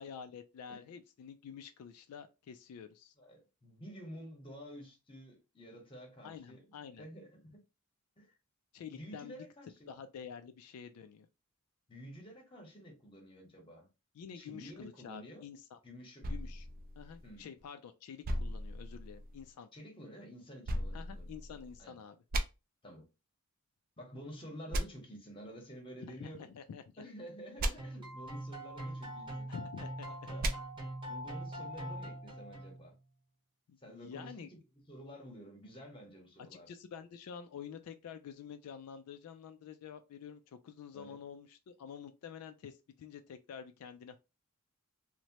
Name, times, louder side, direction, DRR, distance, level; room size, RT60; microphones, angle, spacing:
voice 1, 0.0-3.1 6.2-7.1 8.7-9.5 9.9-11.3 14.1-15.8 16.3-16.7 17.0-19.7 20.9-22.2 26.2-27.0 27.6-27.7 29.5-30.3 33.7-34.5 36.7-44.2, left 7 dB, 75° left, 0.3 m, -48 dB
voice 2, 3.2-7.6 8.2-8.4 8.9-9.9 11.9-13.9 14.3-15.4 15.8-16.3 17.2-17.5 19.7-21.3 21.8-22.0 22.8-23.0 24.0-26.5 27.0-29.5 30.0-30.5 31.1-32.9 33.8-36.7 40.9-41.2, equal, 25° left, 0.9 m, -50 dB
sound 1, 16.2-17.6 18.2-19.5 20.6-21.8 22.3-22.4 24.7-24.8 27.6-27.7 30.4-30.5, right 1 dB, 40° right, 0.4 m, -36 dB
sound 2, 27.8-33.0, right 1 dB, 20° right, 0.8 m, -43 dB
3.0 x 2.1 x 2.8 m
head